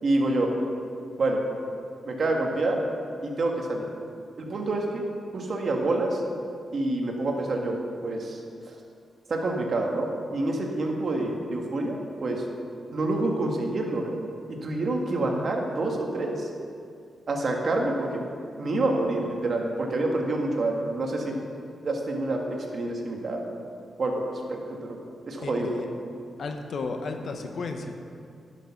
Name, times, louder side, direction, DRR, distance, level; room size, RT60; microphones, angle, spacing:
voice 1, 0.0-0.5 1.2-1.4 2.0-2.8 3.2-3.9 4.4-5.1 5.3-6.2 6.7-8.4 9.3-12.4 12.9-14.2 14.5-16.5 17.3-18.2 18.6-21.3 21.8-23.4 24.0-24.6 24.9-25.8, right 2 dB, 55° right, 1 dB, 1.6 m, -27 dB
voice 2, 25.4-27.9, left 3 dB, 65° left, 5 dB, 1.0 m, -34 dB
11.5 x 6.6 x 5.8 m, 2.3 s
cardioid pair, 90°, 0 cm